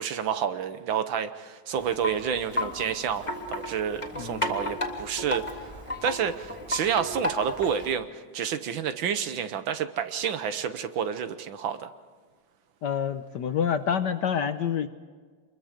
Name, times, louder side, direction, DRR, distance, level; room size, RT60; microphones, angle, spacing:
voice 1, 0.0-5.7 6.0-8.1 8.3-11.9, right 8 dB, 65° right, 10 dB, 1.6 m, -29 dB
Wind chime, 1.8-8.0, left 1 dB, 15° left, 2.7 m, -34 dB
voice 2, 4.1-4.5 12.8-14.9, left 8 dB, 65° left, 9 dB, 1.2 m, -27 dB
27.0 x 22.0 x 5.1 m, 1.5 s
omnidirectional pair, 2.4 m